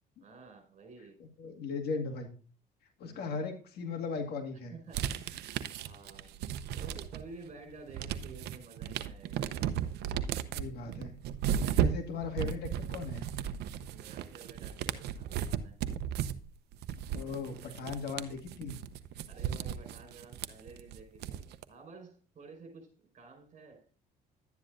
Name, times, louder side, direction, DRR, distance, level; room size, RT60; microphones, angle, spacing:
voice 1, 0.2-1.2 3.0-3.5 4.7-6.4 6.7-9.5 13.9-15.8 19.3-23.9, right 4 dB, 45° right, 4 dB, 5.1 m, -52 dB
voice 2, 1.4-2.3 3.0-4.7 10.5-11.2 11.8-13.3 17.1-18.8, left 4 dB, 70° left, 4 dB, 2.1 m, -37 dB
sound 1, 4.9-7.4 7.7-21.6, right 9 dB, 75° right, 0.8 m, -35 dB
11.5 x 9.7 x 2.6 m, 0.40 s
cardioid pair, 110°, 17 cm